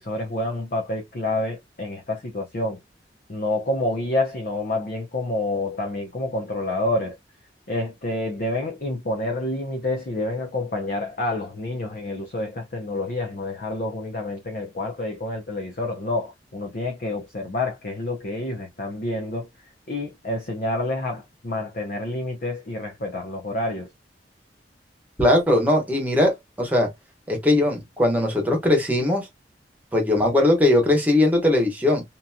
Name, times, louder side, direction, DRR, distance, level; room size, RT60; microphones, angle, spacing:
voice 1, 0.0-2.8 3.3-7.2 7.7-19.5 19.9-23.9, left 2 dB, 50° left, 0.6 m, -28 dB
voice 2, 25.2-26.9 27.3-29.3 29.9-32.0, left 1 dB, 10° right, 1.1 m, -20 dB
2.9 x 2.6 x 2.2 m
head